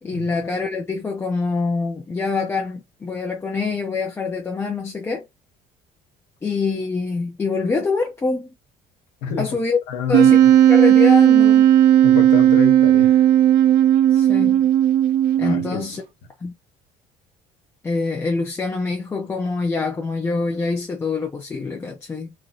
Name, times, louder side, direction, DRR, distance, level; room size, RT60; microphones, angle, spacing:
voice 1, 0.0-5.2 6.4-8.5 9.4-9.8 10.1-10.4 10.7-11.7 14.1-14.6 15.4-16.0 16.4-16.5 17.8-22.3, left 4 dB, 15° left, 0.6 m, -25 dB
voice 2, 9.9-10.3 12.0-13.3 15.4-15.8, left 7 dB, 85° left, 1.0 m, -28 dB
Wind instrument woodwind instrument, 10.1-15.8, right 11 dB, 85° right, 0.6 m, -14 dB
3.1 x 2.7 x 2.4 m
cardioid pair, 135°, 14 cm